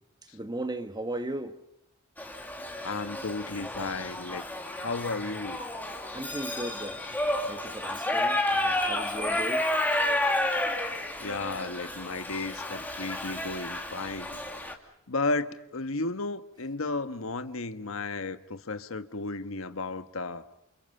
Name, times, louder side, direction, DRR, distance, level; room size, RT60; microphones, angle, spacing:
voice 1, 0.3-1.6 6.1-9.7, right 1 dB, 20° right, 1.3 m, -37 dB
Shout / Livestock farm animals working animals, 2.2-14.7, left 1 dB, 10° left, 2.3 m, -31 dB
voice 2, 2.8-4.4 4.7-5.6 11.2-14.4 15.1-20.4, left 3 dB, 90° left, 1.3 m, -33 dB
30.0 x 28.5 x 5.5 m
head